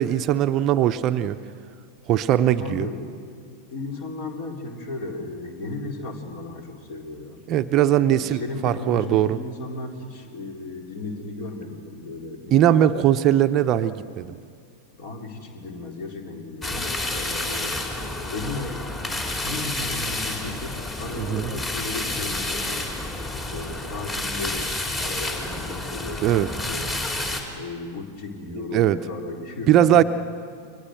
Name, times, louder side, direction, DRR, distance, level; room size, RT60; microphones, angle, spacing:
voice 1, 0.0-1.4 2.1-2.9 7.5-9.4 12.5-14.4 21.2-21.5 26.2-26.5 28.7-29.0 29.7-30.0, right 11 dB, 35° right, 11 dB, 0.7 m, -20 dB
voice 2, 2.6-3.0 3.7-7.4 8.1-13.0 14.9-17.9 18.3-18.8 19.3-22.9 23.4-26.9 27.6-30.0, left 2 dB, 50° left, 2 dB, 4.1 m, -35 dB
sound 1, 16.6-27.4, left 2 dB, 20° left, 4.0 m, -30 dB
30.0 x 24.0 x 6.6 m, 2.3 s
figure-of-eight pair, 90°, 0 cm